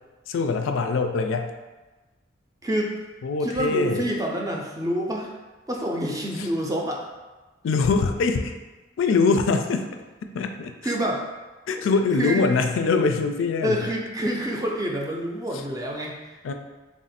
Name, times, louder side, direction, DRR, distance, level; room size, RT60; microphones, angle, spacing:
voice 1, 0.3-1.5 3.2-4.1 6.4-6.5 7.6-8.6 9.0-9.9 10.3-10.7 11.7-13.8 16.4-16.5, left 4 dB, 90° left, 6 dB, 0.4 m, -23 dB
voice 2, 3.4-5.3 5.7-7.1 10.8-11.3 11.8-11.9 12.2-12.5 13.6-16.5, equal, 20° right, -1 dB, 0.5 m, -27 dB
3.5 x 2.5 x 4.1 m, 1.2 s
head